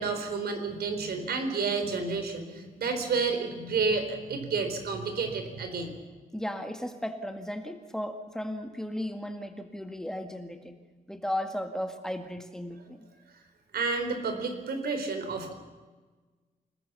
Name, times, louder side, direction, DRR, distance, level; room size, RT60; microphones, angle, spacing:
voice 1, 0.0-5.9 13.7-15.5, right 4 dB, 85° right, 7 dB, 4.3 m, -30 dB
voice 2, 6.3-10.8 11.1-13.1, left 1 dB, 5° left, 6 dB, 1.8 m, -35 dB
28.5 x 20.0 x 7.0 m, 1.3 s
wide cardioid pair, 155°, 16 cm